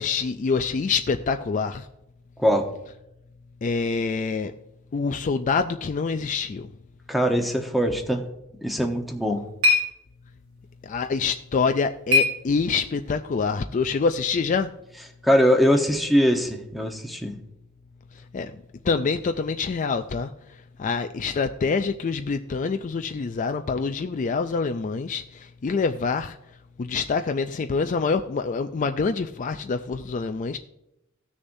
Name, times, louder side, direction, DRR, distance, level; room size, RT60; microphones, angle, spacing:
voice 1, 0.0-1.9 3.6-4.5 4.9-6.7 10.8-14.7 18.3-18.6 18.8-20.3 20.8-26.4 26.8-30.6, left 4 dB, 35° left, 8 dB, 0.4 m, -26 dB
voice 2, 7.1-8.2 8.6-9.4 15.2-17.4, equal, ahead, 3 dB, 1.0 m, -21 dB
sound 1, 8.9-13.1, left 3 dB, 70° right, 3.0 m, -27 dB
17.0 x 6.7 x 2.7 m, 0.87 s
head